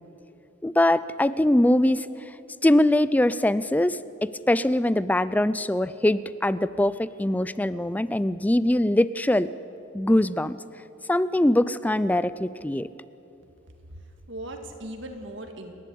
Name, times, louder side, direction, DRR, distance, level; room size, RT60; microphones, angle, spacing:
voice 1, 0.6-2.1 2.6-4.0 4.5-9.5 9.9-10.6 11.1-12.9, left 1 dB, 10° left, 16 dB, 0.4 m, -22 dB
voice 2, 13.9-15.7, right 1 dB, 65° right, 4 dB, 2.1 m, -39 dB
29.0 x 11.5 x 8.5 m, 2.8 s
head